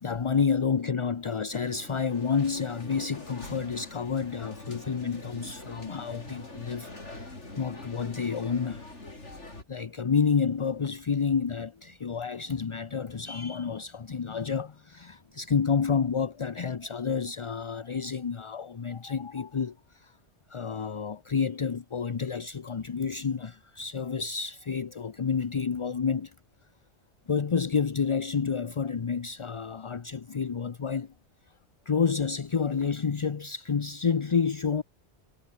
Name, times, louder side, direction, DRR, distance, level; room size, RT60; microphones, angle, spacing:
voice 1, 0.0-8.8 9.7-20.2 20.5-26.3 27.3-31.1 31.9-34.8, left 6 dB, 35° left, 0.6 m, -29 dB
sound 1, 1.5-9.6, left 2 dB, 80° left, 5.0 m, -44 dB
omnidirectional pair, 1.2 m